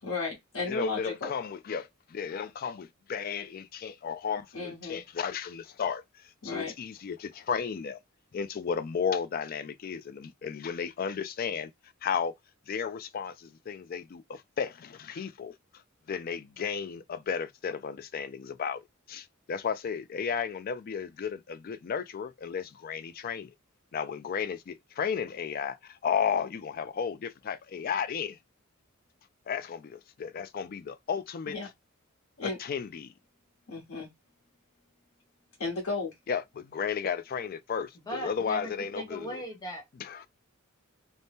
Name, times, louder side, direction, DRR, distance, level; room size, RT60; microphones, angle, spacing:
voice 1, 0.0-1.3 4.5-5.0 6.4-6.7 31.5-31.7 32.4-32.6 33.7-34.1 35.6-36.1, left 3 dB, 90° left, 1.1 m, -34 dB
voice 2, 0.7-6.0 6.4-8.0 8.3-11.7 12.0-12.3 12.7-15.5 16.1-18.8 19.1-23.5 23.9-28.4 29.5-31.6 32.4-33.1 36.3-39.4 40.0-40.3, left 6 dB, 45° left, 0.3 m, -33 dB
voice 3, 38.0-39.8, equal, 20° left, 1.0 m, -38 dB
2.7 x 2.1 x 3.4 m
head